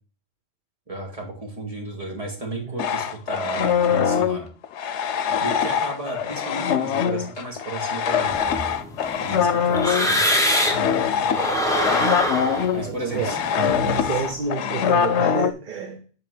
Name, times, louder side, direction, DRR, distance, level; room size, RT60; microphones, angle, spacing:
voice 1, 0.9-4.5 5.4-8.4 9.2-10.2 12.7-13.4 14.0-14.2, right 2 dB, 30° right, 2.5 m, -33 dB
sound 1, 2.8-15.5, left 8 dB, 85° left, 0.9 m, -23 dB
voice 2, 5.3-5.6 10.7-11.6 12.7-16.1, right 4 dB, 45° right, 1.0 m, -31 dB
sound 2, 8.3-10.9 11.3-14.3, equal, 5° left, 1.3 m, -25 dB
7.8 x 4.9 x 4.9 m
omnidirectional pair, 1.2 m